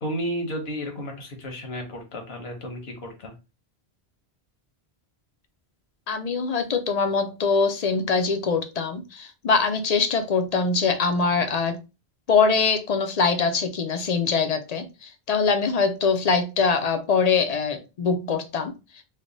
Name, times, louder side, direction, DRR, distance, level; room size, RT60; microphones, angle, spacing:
voice 1, 0.0-3.3, equal, 75° left, 1.2 m, -32 dB
voice 2, 6.1-11.8 12.3-18.7, left 5 dB, 50° left, 0.5 m, -23 dB
3.2 x 2.1 x 3.9 m
omnidirectional pair, 1.1 m